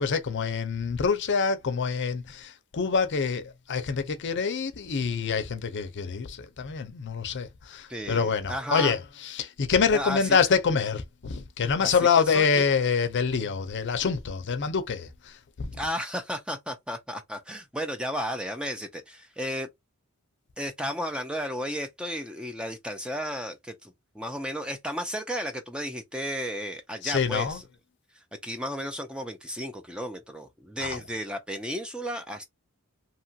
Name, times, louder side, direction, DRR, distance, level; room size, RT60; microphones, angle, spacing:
voice 1, 0.0-15.8 27.0-27.6 30.8-31.0, left 5 dB, 55° left, 0.5 m, -26 dB
voice 2, 7.9-8.9 9.9-10.4 11.8-12.6 15.8-19.7 20.6-27.6 28.4-32.5, equal, 5° right, 0.4 m, -33 dB
2.9 x 2.3 x 2.7 m
head